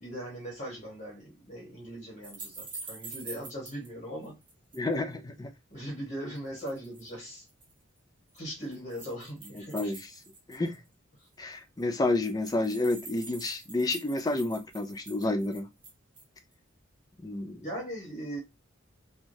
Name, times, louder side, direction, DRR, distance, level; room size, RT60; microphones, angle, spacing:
voice 1, 0.0-4.4 5.7-7.4 8.3-9.9 17.6-18.4, equal, 35° left, 1.1 m, -39 dB
sound 1, 2.2-3.9 4.2-4.9 6.4-7.1 7.5-7.7 8.4-10.9 11.2-11.3 11.5-11.6 11.8-16.4, right 3 dB, 25° right, 0.8 m, -45 dB
voice 2, 4.7-5.5 9.5-10.1 10.5-10.8 11.4-15.7 17.2-17.7, left 2 dB, 20° left, 0.4 m, -30 dB
3.1 x 2.3 x 2.6 m
head